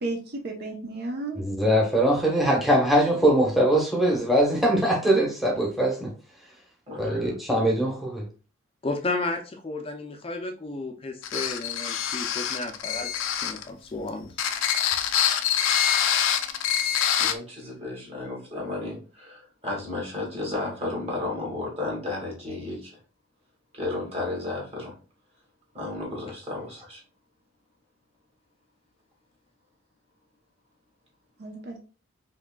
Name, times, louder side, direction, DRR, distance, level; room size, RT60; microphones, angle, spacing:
voice 1, 0.0-1.4 31.4-31.8, right 2 dB, 55° right, 0.7 m, -33 dB
voice 2, 1.4-6.1 7.0-8.3, right 1 dB, ahead, 1.0 m, -22 dB
voice 3, 6.9-7.4 17.2-23.0 23.7-24.9 25.7-27.0, left 2 dB, 30° right, 1.7 m, -33 dB
voice 4, 8.8-14.3, left 2 dB, 30° left, 0.4 m, -33 dB
sound 1, 11.2-13.6 14.3-17.3, left 9 dB, 85° left, 0.5 m, -25 dB
4.9 x 3.0 x 2.2 m
head